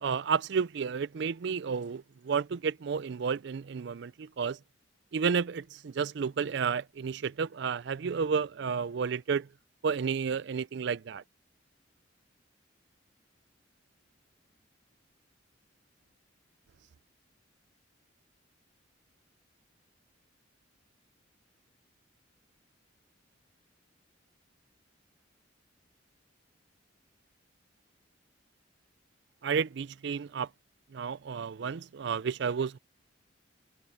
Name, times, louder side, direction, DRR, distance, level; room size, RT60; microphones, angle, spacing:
voice 1, 0.0-4.6 5.1-9.5 9.8-11.2 29.4-30.5 30.9-32.8, right 6 dB, 60° right, 0.4 m, -31 dB
head